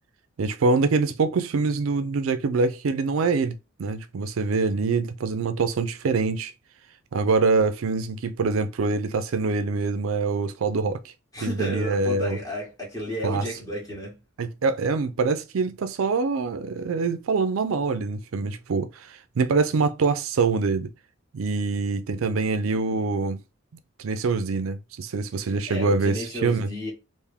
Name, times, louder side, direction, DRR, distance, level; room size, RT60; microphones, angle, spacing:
voice 1, 0.4-6.5 7.1-11.1 11.4-12.4 13.2-13.4 14.4-20.9 21.3-23.4 24.0-26.7, right 4 dB, 65° right, 0.4 m, -25 dB
voice 2, 11.3-14.2 25.4-26.9, equal, 15° left, 1.9 m, -33 dB
3.4 x 2.5 x 3.5 m
head